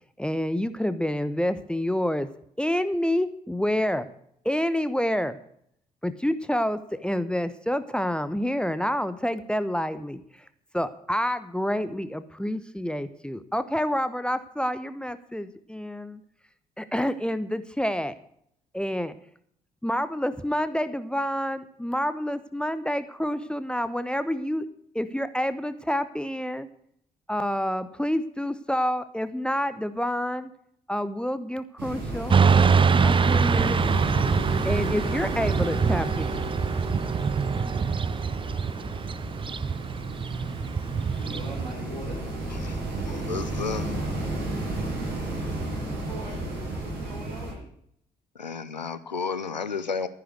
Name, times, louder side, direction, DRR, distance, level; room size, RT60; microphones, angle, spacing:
voice 1, 0.2-2.3 2.6-4.1 4.4-5.4 6.0-10.2 10.7-16.2 16.8-18.2 18.7-19.1 19.8-24.7 24.9-26.7 27.3-30.5 30.9-32.4 33.0-33.8 34.6-36.5, equal, 5° left, 12 dB, 1.0 m, -28 dB
sound 1, 31.8-47.5, right 2 dB, 55° right, 6.6 m, -32 dB
Motorcycle / Traffic noise roadway noise, 32.3-41.7, right 5 dB, 25° right, 0.6 m, -24 dB
voice 2, 41.1-42.2 42.7-43.2 46.0-47.7, right 1 dB, 80° right, -3 dB, 5.7 m, -42 dB
voice 3, 43.3-43.9 48.4-50.1, left 5 dB, 90° left, 14 dB, 0.6 m, -31 dB
14.0 x 10.0 x 6.4 m, 0.69 s
figure-of-eight pair, 45°, 21 cm